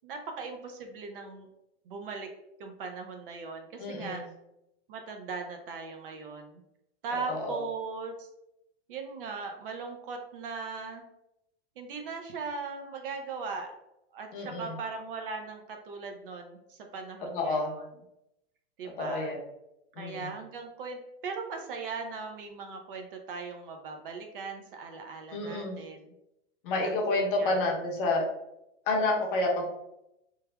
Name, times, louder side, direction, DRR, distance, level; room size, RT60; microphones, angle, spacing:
voice 1, 0.0-1.5 1.9-2.3 2.6-4.2 4.9-6.6 7.0-8.3 8.9-11.1 11.8-13.7 14.1-17.8 18.8-19.4 20.0-26.1 26.8-27.6, right 4 dB, 50° right, 4 dB, 0.5 m, -39 dB
voice 2, 3.8-4.2 7.1-7.6 14.3-14.8 17.3-17.7 19.0-19.4 20.0-20.3 25.3-25.8 26.6-28.3 28.9-29.6, left 2 dB, 50° left, 0 dB, 0.7 m, -29 dB
3.1 x 2.2 x 2.2 m, 0.86 s
supercardioid pair, 160°, 35 cm